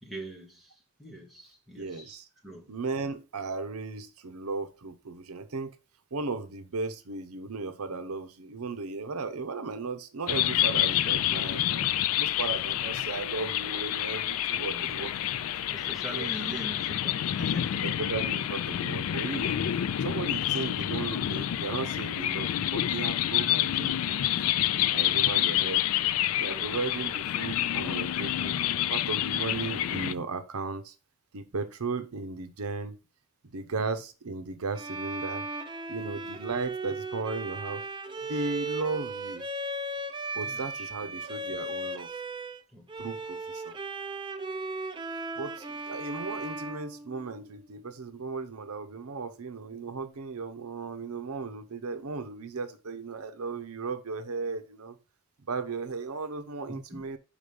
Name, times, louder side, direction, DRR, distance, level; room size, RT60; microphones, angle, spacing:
voice 1, 0.0-2.2 2.4-2.7 14.5-14.9 15.6-18.0 19.5-19.7 26.5-26.8 40.4-41.1 42.7-43.1 56.7-57.0, right 1 dB, ahead, -2 dB, 1.5 m, -43 dB
voice 2, 1.8-2.3 2.7-5.8 6.1-11.8 12.2-15.5 16.1-16.3 17.8-19.6 20.0-24.4 24.9-25.8 26.4-28.6 28.9-30.9 31.3-33.0 33.5-35.5 35.9-37.8 38.2-39.4 40.3-42.1 43.0-43.7 45.4-55.0 55.5-57.2, right 4 dB, 85° right, 9 dB, 0.8 m, -36 dB
sound 1, 10.3-30.1, left 12 dB, 75° left, 0.3 m, -28 dB
Bowed string instrument, 34.7-42.6 42.9-47.7, right 2 dB, 20° right, 0.4 m, -36 dB
5.2 x 5.0 x 5.2 m, 0.32 s
head